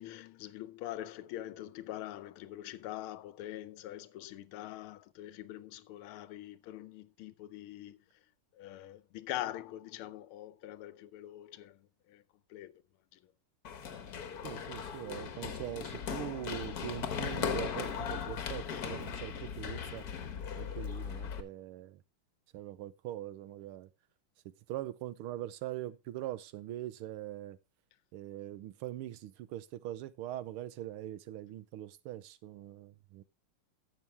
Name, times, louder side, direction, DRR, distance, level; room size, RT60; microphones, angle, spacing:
voice 1, 0.0-8.0 8.6-11.8 12.1-12.2 12.5-12.7, left 13 dB, 85° left, 1.6 m, -43 dB
Run, 13.6-21.4, left 7 dB, 55° left, 1.3 m, -38 dB
voice 2, 14.4-20.1 20.6-22.0 22.5-23.9 24.7-27.6 28.1-33.2, right 13 dB, 85° right, 1.6 m, -42 dB
11.5 x 7.6 x 3.4 m
omnidirectional pair, 2.3 m